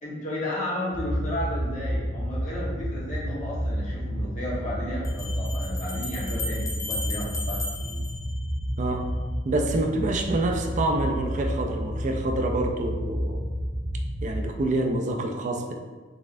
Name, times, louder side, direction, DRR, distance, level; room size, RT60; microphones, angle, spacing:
voice 1, 0.0-8.0, left 1 dB, 40° left, -6 dB, 1.2 m, -33 dB
sound 1, 0.9-14.4, equal, 60° left, 1.1 m, -30 dB
sound 2, 3.4-3.5 5.0-9.0, left 2 dB, 20° left, 0.6 m, -36 dB
voice 2, 8.8-9.1 9.4-13.4 14.2-15.8, right 2 dB, 40° right, 3 dB, 0.4 m, -27 dB
4.1 x 3.5 x 2.5 m, 1.4 s
head